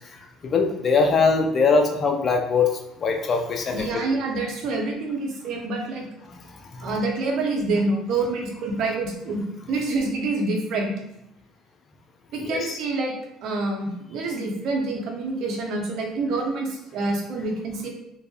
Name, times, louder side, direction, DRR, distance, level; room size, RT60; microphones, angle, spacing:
voice 1, 0.0-4.0 6.2-7.0 12.4-12.8, left 4 dB, 45° left, 3 dB, 0.5 m, -23 dB
voice 2, 3.7-6.1 6.8-9.4 9.7-10.9 12.3-13.1 13.4-17.9, right 3 dB, 60° right, 1 dB, 0.6 m, -27 dB
2.7 x 2.4 x 2.3 m, 0.82 s
hypercardioid pair, 65°, 0 cm